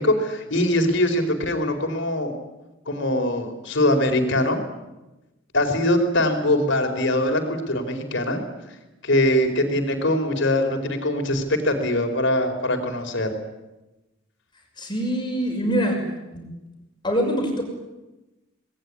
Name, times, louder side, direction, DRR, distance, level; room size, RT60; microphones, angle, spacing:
voice 1, 0.0-2.3 2.9-4.6 5.5-8.4 9.0-13.3, left 1 dB, 60° left, 5 dB, 4.7 m, -22 dB
voice 2, 14.8-16.0 16.3-16.5 17.0-17.6, equal, 20° left, 1 dB, 6.0 m, -24 dB
27.5 x 20.5 x 10.0 m, 1.1 s
head